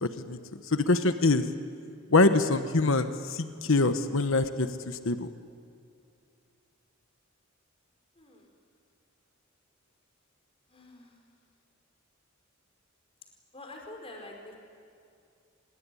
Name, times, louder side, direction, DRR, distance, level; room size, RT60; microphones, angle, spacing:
voice 1, 0.0-0.4 0.7-1.4 2.1-5.3, left 3 dB, 70° left, 9 dB, 1.1 m, -24 dB
voice 2, 8.1-8.6 10.7-11.2 13.5-14.6, left 2 dB, 30° left, 2 dB, 4.7 m, -46 dB
25.0 x 22.0 x 9.9 m, 2.5 s
head